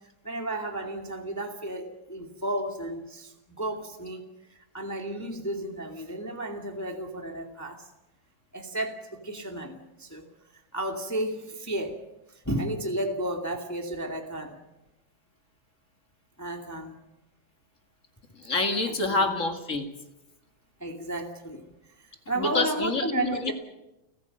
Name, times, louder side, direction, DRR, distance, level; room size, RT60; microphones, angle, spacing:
voice 1, 0.2-4.2 4.5-7.8 8.5-10.3 10.7-12.0 12.4-14.6 16.4-16.9 18.9-19.3 20.8-21.7 22.0-23.5, right 1 dB, 5° left, 3 dB, 1.8 m, -33 dB
voice 2, 18.4-19.9 22.4-23.5, left 3 dB, 30° left, 5 dB, 2.1 m, -27 dB
30.0 x 15.5 x 7.9 m, 0.96 s
omnidirectional pair, 3.4 m